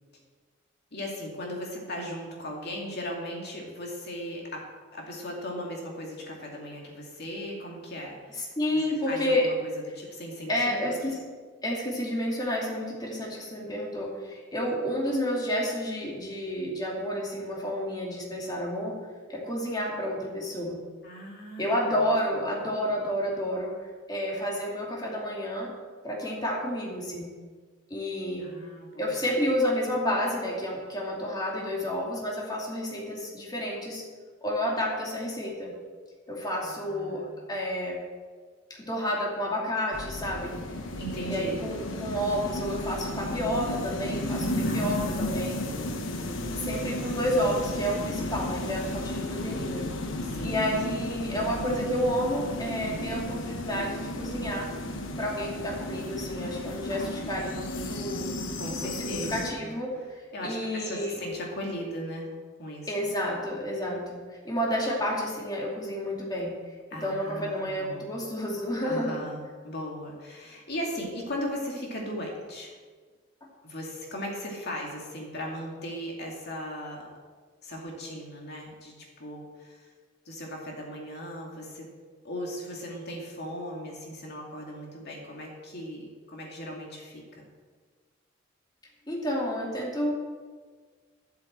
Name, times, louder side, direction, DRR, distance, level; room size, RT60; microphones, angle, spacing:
voice 1, 0.9-4.6 4.9-8.5 9.1-11.0 21.0-22.7 28.4-29.1 36.6-37.3 41.0-41.7 44.7-46.0 50.2-51.1 58.6-59.8 60.3-62.3 62.6-62.9 66.9-68.1 68.8-72.7 73.6-77.1 77.6-79.9 80.2-81.9 82.2-87.4, equal, 55° left, -1 dB, 2.6 m, -38 dB
voice 2, 8.4-9.5 10.5-11.2 11.6-19.0 19.3-20.8 21.6-23.7 24.1-25.7 26.0-27.3 27.9-28.5 29.0-34.0 34.4-35.7 36.3-38.0 38.7-40.6 41.2-45.6 46.6-49.8 50.4-54.7 55.2-58.3 58.8-61.2 62.9-66.5 67.0-69.2 89.1-90.1, equal, 20° left, -3 dB, 2.7 m, -30 dB
sound 1, 39.9-59.5, left 1 dB, 85° left, 1.2 m, -33 dB
12.0 x 8.1 x 7.5 m, 1.5 s
head